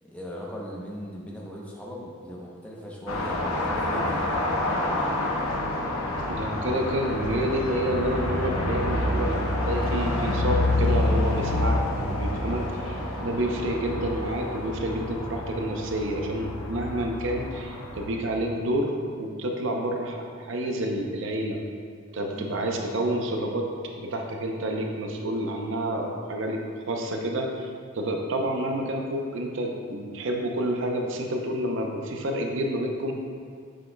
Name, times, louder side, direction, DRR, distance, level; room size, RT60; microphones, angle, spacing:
voice 1, 0.0-5.6 22.3-22.8, equal, 5° left, -3 dB, 0.7 m, -39 dB
sound 1, 3.1-18.1, left 1 dB, 75° left, 0.9 m, -28 dB
voice 2, 6.3-11.8 12.1-21.6 22.1-23.7 24.0-26.6 26.9-27.7 27.9-33.1, right 1 dB, 60° right, 2 dB, 0.6 m, -29 dB
7.6 x 6.7 x 2.2 m, 2.1 s
head